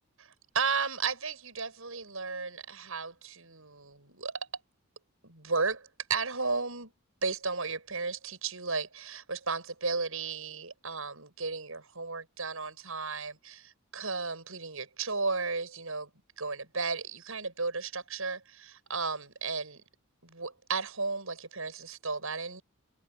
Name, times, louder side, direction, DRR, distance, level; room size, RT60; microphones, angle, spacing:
voice 1, 0.5-4.4 5.2-6.9 7.2-16.1 16.4-19.8 20.2-22.6, right 4 dB, 75° right, 7.1 m, -34 dB
head